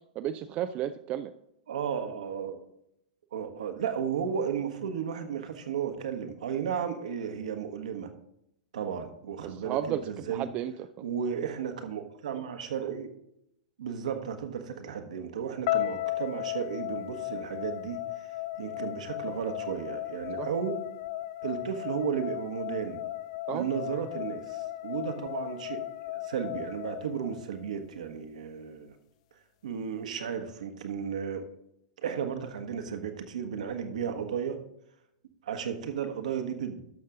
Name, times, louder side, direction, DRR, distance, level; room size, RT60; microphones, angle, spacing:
voice 1, 0.2-1.3 9.4-10.7 20.4-20.5 23.5-23.7, right 11 dB, 35° right, 9 dB, 0.4 m, -33 dB
voice 2, 1.7-2.6 3.3-8.1 8.7-10.4 11.0-13.1 13.8-18.3 18.6-20.8 21.4-23.0 23.5-25.8 26.2-28.9 29.6-31.4 32.0-34.6 35.4-36.8, right 7 dB, 70° right, 6 dB, 1.3 m, -34 dB
sound 1, 15.7-27.8, left 15 dB, 55° left, 0.4 m, -36 dB
12.0 x 6.6 x 3.8 m, 0.77 s
figure-of-eight pair, 105°, 4 cm